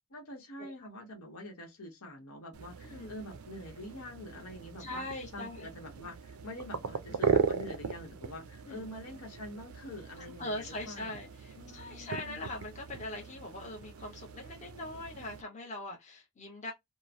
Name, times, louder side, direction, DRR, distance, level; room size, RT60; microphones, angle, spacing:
voice 1, 0.1-5.0 5.3-11.3 11.5-12.4, left 1 dB, 80° left, 1.0 m, -46 dB
sound 1, 2.5-15.4, right 5 dB, 75° right, 0.5 m, -38 dB
voice 2, 2.8-3.2 4.8-5.7 7.1-7.2 8.7-8.9 10.2-16.7, left 2 dB, 30° left, 0.9 m, -41 dB
2.9 x 2.1 x 2.5 m
head